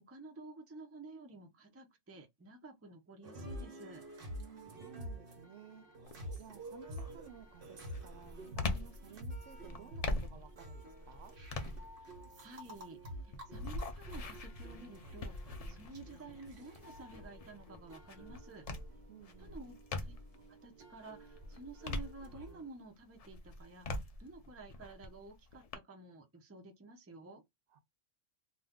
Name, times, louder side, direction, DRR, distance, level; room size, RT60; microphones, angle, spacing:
voice 1, 0.1-4.0 12.0-13.0 13.2-18.7 19.4-20.1 20.5-27.4, right 3 dB, 20° right, 0.4 m, -52 dB
sound 1, 3.2-22.7, equal, 55° right, 1.2 m, -49 dB
voice 2, 4.3-5.9 6.4-11.4 19.1-19.6 27.7-27.8, right 8 dB, 75° right, 0.9 m, -55 dB
sound 2, 6.0-6.4 6.9-20.5 20.9-22.7 23.2-25.8, left 2 dB, 55° left, 0.4 m, -43 dB
2.6 x 2.2 x 3.5 m
omnidirectional pair, 1.2 m